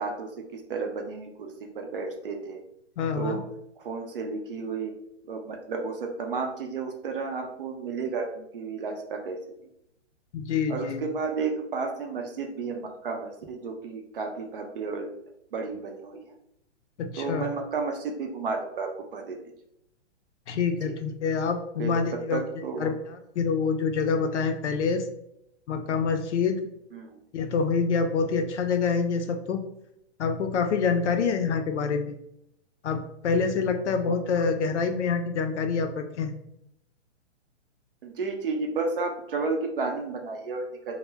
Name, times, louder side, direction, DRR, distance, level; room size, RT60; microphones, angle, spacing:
voice 1, 0.0-2.6 3.1-3.5 3.8-4.9 5.3-9.4 10.7-15.1 15.5-16.3 17.2-19.4 20.8-21.0 21.8-22.9 26.9-27.2 34.1-34.2 38.0-40.9, right 4 dB, 50° right, 3 dB, 0.5 m, -32 dB
voice 2, 3.0-3.4 10.3-11.0 17.0-17.5 20.5-22.4 22.8-25.1 25.7-26.6 27.3-29.7 30.2-32.2 32.8-36.4, left 5 dB, 75° left, 7 dB, 0.5 m, -26 dB
2.1 x 2.0 x 3.3 m, 0.78 s
hypercardioid pair, 165°, 36 cm